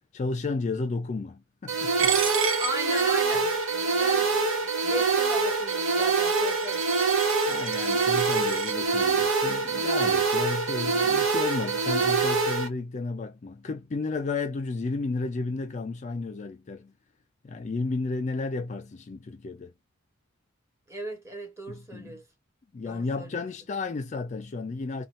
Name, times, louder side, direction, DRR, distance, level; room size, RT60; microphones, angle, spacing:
voice 1, 0.1-2.6 7.5-16.9 17.4-19.7 21.7-22.2 22.7-25.1, left 3 dB, 35° left, 0.3 m, -33 dB
sound 1, 1.7-12.7, right 4 dB, 90° right, 1.1 m, -25 dB
Coin (dropping), 2.0-8.7, right 8 dB, 70° right, 0.8 m, -34 dB
voice 2, 2.6-6.9 20.9-22.2 22.8-23.4, right 1 dB, 15° right, 1.1 m, -37 dB
2.8 x 2.2 x 3.0 m
head